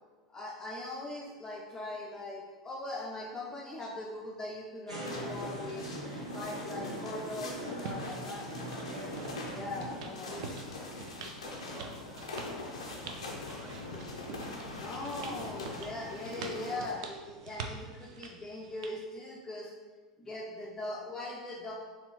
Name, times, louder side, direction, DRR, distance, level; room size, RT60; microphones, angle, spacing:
voice 1, 0.3-5.9 6.3-8.5 9.5-10.4 14.6-19.7 20.2-21.7, left 2 dB, 15° left, -3 dB, 0.5 m, -40 dB
sound 1, 4.9-9.9, right 1 dB, 90° right, 0.8 m, -41 dB
sound 2, 5.0-16.9, left 2 dB, 75° left, 0.6 m, -42 dB
sound 3, 7.8-19.0, right 5 dB, 60° right, 0.4 m, -46 dB
voice 2, 9.6-11.0 11.4-12.7 13.0-14.4 20.2-20.3 21.2-21.3, right 1 dB, 20° right, -2 dB, 1.0 m, -51 dB
4.3 x 3.0 x 2.8 m, 1.4 s
figure-of-eight pair, 80°, 3 cm